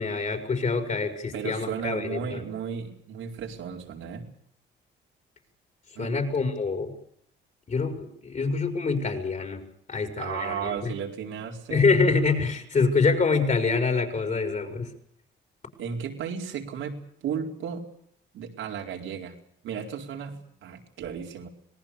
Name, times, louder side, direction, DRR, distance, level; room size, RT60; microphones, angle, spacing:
voice 1, 0.0-2.4 6.0-6.9 7.7-9.6 9.9-10.9 11.7-14.9, left 4 dB, 40° left, 6 dB, 5.7 m, -25 dB
voice 2, 1.3-4.2 5.9-6.2 10.2-11.9 15.8-17.8 18.3-19.3 19.6-21.5, right 7 dB, 85° right, 1 dB, 4.7 m, -34 dB
26.0 x 19.5 x 6.9 m, 0.70 s
cardioid pair, 90°, 20 cm